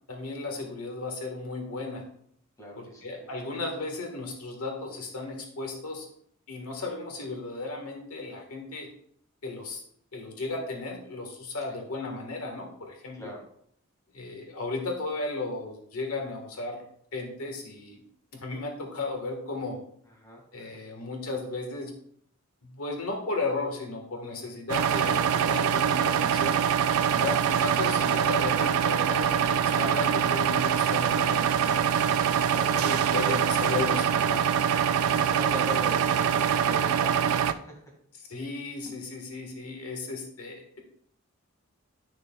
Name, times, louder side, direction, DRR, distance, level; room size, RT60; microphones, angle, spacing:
voice 1, 0.1-2.0 2.8-6.0 6.5-8.9 9.4-9.8 10.1-13.3 14.1-16.8 17.1-18.0 18.3-19.8 20.5-21.9 22.6-26.6 27.2-32.0 32.7-34.4 38.3-40.8, left 3 dB, 90° left, 2 dB, 1.5 m, -35 dB
voice 2, 2.6-3.5 11.7-11.8 13.1-13.4 20.2-20.8 32.5-32.7 35.0-37.9, equal, 15° left, -1 dB, 1.8 m, -41 dB
sound 1, 24.7-37.5, right 8 dB, 80° right, 0.4 m, -24 dB
10.5 x 6.4 x 2.3 m, 0.67 s
head